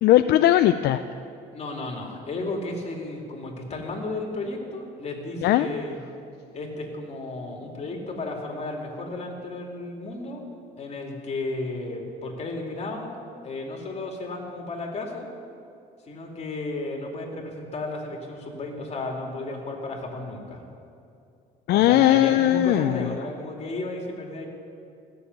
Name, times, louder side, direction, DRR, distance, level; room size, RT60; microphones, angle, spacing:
voice 1, 0.0-1.0 5.4-5.7 21.7-23.1, left 13 dB, 70° left, 10 dB, 0.4 m, -19 dB
voice 2, 1.5-6.0 6.5-10.4 10.8-13.1 13.4-15.3 16.1-20.6 21.7-24.5, left 2 dB, 40° left, 0 dB, 2.7 m, -33 dB
15.0 x 7.0 x 9.5 m, 2.5 s
cardioid pair, 110°, 17 cm